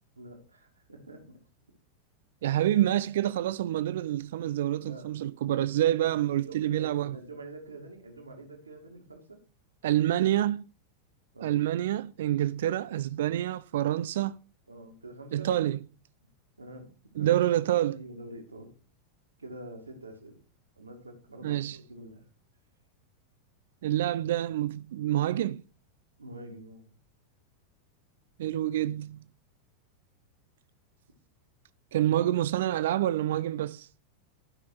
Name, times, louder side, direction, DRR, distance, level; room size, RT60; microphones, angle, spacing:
voice 1, 0.2-1.4 4.8-5.1 5.9-9.4 11.3-11.6 14.7-15.5 16.6-17.4 17.9-18.7 19.4-20.4 20.8-22.3 26.2-26.8, right 2 dB, 80° right, 2.4 m, -46 dB
voice 2, 2.4-7.2 9.8-10.6 11.4-14.4 15.3-15.8 17.2-18.0 21.4-21.8 23.8-25.6 28.4-29.2 31.9-33.9, right 13 dB, 55° right, 0.4 m, -27 dB
12.0 x 5.9 x 4.7 m
figure-of-eight pair, 90°, 0 cm